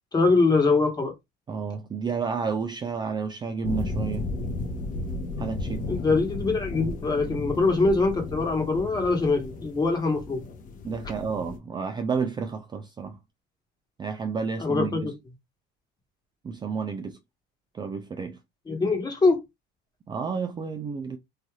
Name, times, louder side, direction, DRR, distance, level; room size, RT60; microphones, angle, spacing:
voice 1, 0.1-1.1 5.9-10.4 14.6-15.1 18.7-19.4, left 3 dB, 20° left, 1.2 m, -23 dB
voice 2, 1.5-4.3 5.4-5.9 10.8-13.2 14.0-15.1 16.4-17.2 17.7-18.4 20.1-21.2, right 5 dB, 20° right, 0.4 m, -31 dB
sound 1, 3.6-11.6, left 3 dB, 40° left, 0.8 m, -34 dB
3.2 x 2.6 x 2.3 m
supercardioid pair, 115°, 21 cm